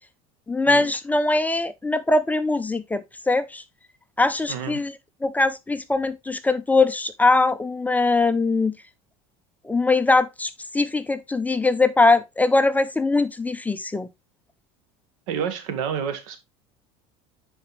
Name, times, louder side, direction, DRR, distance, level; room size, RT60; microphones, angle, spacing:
voice 1, 0.5-3.6 4.2-4.9 5.2-8.7 9.6-14.1, left 3 dB, 10° left, 0.6 m, -21 dB
voice 2, 4.5-4.8 15.3-16.4, right 8 dB, 90° right, 1.7 m, -29 dB
9.7 x 4.5 x 3.1 m
supercardioid pair, 120°, 16 cm